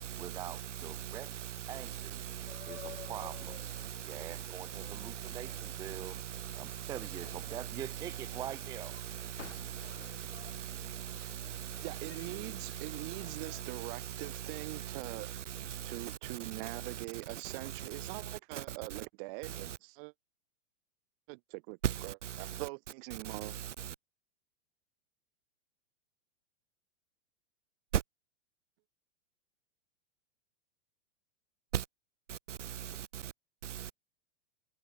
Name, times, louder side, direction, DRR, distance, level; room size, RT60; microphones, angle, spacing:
voice 1, 0.2-1.3 1.7-2.2 2.7-3.6 4.1-6.2 6.6-8.9, right 11 dB, 10° right, 0.4 m, -44 dB
sound 1, 2.5-13.6, left 10 dB, 85° left, 4.2 m, -55 dB
voice 2, 4.8-5.3 6.1-6.6 7.7-7.8 9.7-9.8 10.5-11.1 11.3-11.4 11.9-12.0 12.9-13.7 14.8-15.0 15.7-15.8 16.2-16.3 16.6-16.7 17.6-18.1 18.5-18.6 21.8-22.0 22.6-22.7 23.4-23.5 31.7-31.8 32.9-33.0 33.8-33.9, right 10 dB, 85° right, 3.2 m, -38 dB
voice 3, 11.8-15.3 15.8-20.1 21.3-21.8 22.4-23.5, right 32 dB, 45° right, 4.2 m, -43 dB
hypercardioid pair, 140°, 35 cm